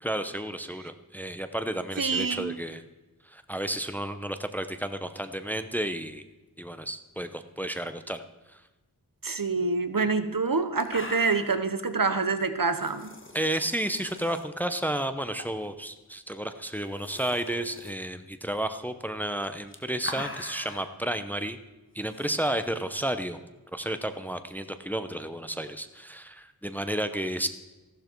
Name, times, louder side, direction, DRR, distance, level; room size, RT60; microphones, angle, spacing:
voice 1, 0.0-2.8 3.2-6.2 6.6-8.2 8.5-8.6 13.3-21.6 21.9-23.4 23.7-27.5, right 1 dB, 5° left, 9 dB, 0.8 m, -32 dB
voice 2, 2.0-2.5 9.2-13.1, right 4 dB, 60° right, 10 dB, 1.1 m, -26 dB
sound 1, 10.0-10.1 10.5-10.6 10.8-11.6 12.7-14.4 15.4-15.7 16.0-16.1 16.7-17.9 19.4-20.9 22.1-22.3, left 1 dB, 30° left, 1.6 m, -42 dB
14.5 x 12.0 x 4.6 m, 1.1 s
wide cardioid pair, 55°, 39 cm